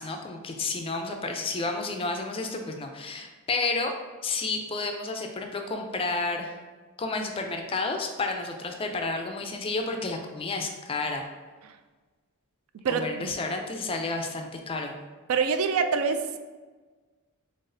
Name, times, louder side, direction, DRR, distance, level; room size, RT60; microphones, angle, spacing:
voice 1, 0.0-3.9 4.2-6.5 7.0-11.3 12.9-15.0, left 3 dB, 25° left, 4 dB, 0.4 m, -31 dB
voice 2, 12.8-13.4 15.3-16.4, right 5 dB, 70° right, 9 dB, 0.3 m, -26 dB
3.9 x 3.6 x 2.6 m, 1.4 s
head